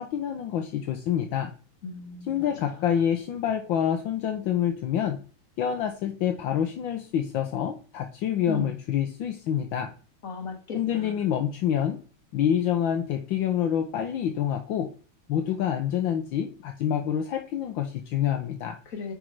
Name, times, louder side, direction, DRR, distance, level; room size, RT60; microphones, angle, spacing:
voice 1, 0.0-1.5 2.3-5.2 5.6-9.9 10.7-12.0 12.3-14.9 15.3-18.8, left 9 dB, 70° left, 1.5 m, -27 dB
voice 2, 1.8-3.0 8.5-8.7 10.2-11.2 18.9-19.1, left 3 dB, 40° left, 2.2 m, -37 dB
10.0 x 5.4 x 4.7 m
omnidirectional pair, 2.4 m